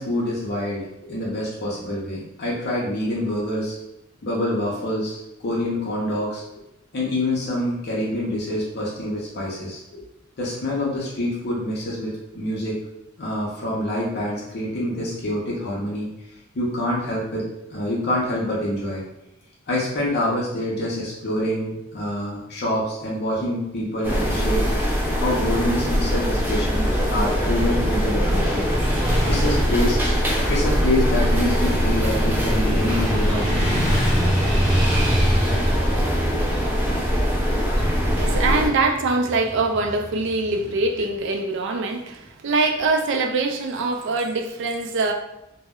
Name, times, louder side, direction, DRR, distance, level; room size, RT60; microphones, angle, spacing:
voice 1, 0.0-3.8 4.2-6.4 6.9-10.0 10.4-12.8 13.2-16.1 16.5-19.0 19.7-24.7 25.2-28.7 29.3-30.0 30.5-33.9 34.5-34.7 36.5-36.6, left 1 dB, 55° left, -5 dB, 0.6 m, -26 dB
sound 1, 24.0-38.7, equal, 10° right, 0.5 m, -22 dB
Motorcycle / Traffic noise roadway noise, 27.0-41.1, equal, 15° left, 0.9 m, -28 dB
voice 2, 38.2-45.1, right 3 dB, 60° right, 5 dB, 0.3 m, -23 dB
2.1 x 2.0 x 3.5 m, 0.88 s
head